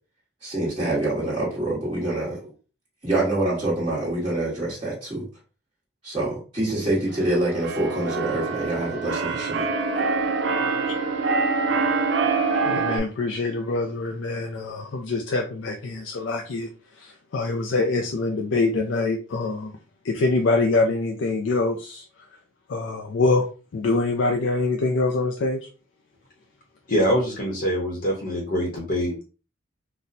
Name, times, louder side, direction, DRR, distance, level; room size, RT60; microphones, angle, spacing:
voice 1, 0.4-2.4 3.0-5.2 6.0-9.7, right 2 dB, 25° right, 1.2 m, -26 dB
Keyboard (musical), 7.1-13.0, right 4 dB, 60° right, 0.5 m, -25 dB
voice 2, 12.6-16.7 17.0-19.7 20.0-22.0 22.7-23.5 23.7-25.7, left 3 dB, 75° left, 0.4 m, -24 dB
voice 3, 26.9-29.2, equal, 50° left, 0.9 m, -24 dB
4.0 x 2.2 x 2.6 m
head